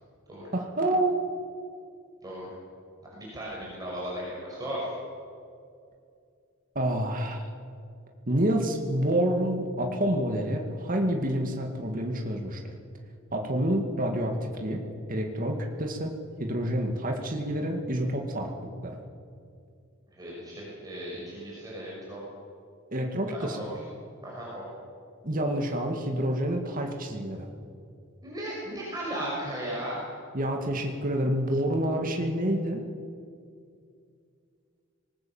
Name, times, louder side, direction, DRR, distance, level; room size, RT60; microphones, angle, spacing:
voice 1, 0.5-1.2 6.8-7.5 8.3-12.7 13.3-14.8 15.1-16.1 16.4-19.0 22.9-23.7 25.2-27.5 30.3-32.8, right 1 dB, 40° right, 2 dB, 2.2 m, -28 dB
voice 2, 3.1-4.9 20.1-22.2 23.3-23.8 24.2-24.6 28.2-30.0, right 1 dB, 20° right, -5 dB, 6.0 m, -36 dB
26.0 x 20.0 x 7.3 m, 2.4 s
head